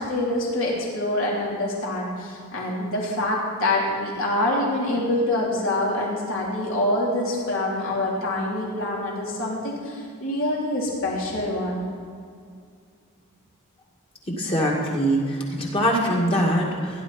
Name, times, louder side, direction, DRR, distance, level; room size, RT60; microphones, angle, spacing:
voice 1, 0.0-11.8, left 1 dB, 65° left, -4 dB, 3.5 m, -25 dB
voice 2, 14.3-17.0, equal, 25° left, -2 dB, 2.1 m, -23 dB
16.5 x 11.0 x 4.3 m, 2.2 s
head